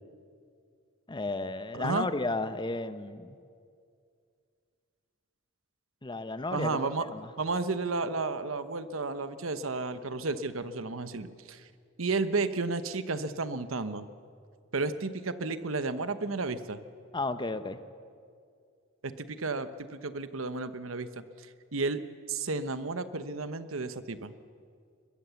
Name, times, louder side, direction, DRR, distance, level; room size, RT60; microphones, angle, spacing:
voice 1, 1.1-3.4 6.0-7.3 17.1-17.8, left 2 dB, 25° left, 11 dB, 0.8 m, -33 dB
voice 2, 1.7-2.1 6.5-7.1 7.4-11.7 12.0-14.1 14.7-16.8 19.0-22.0 22.3-24.3, right 3 dB, 80° right, 12 dB, 1.0 m, -32 dB
23.0 x 21.0 x 7.1 m, 2.2 s
head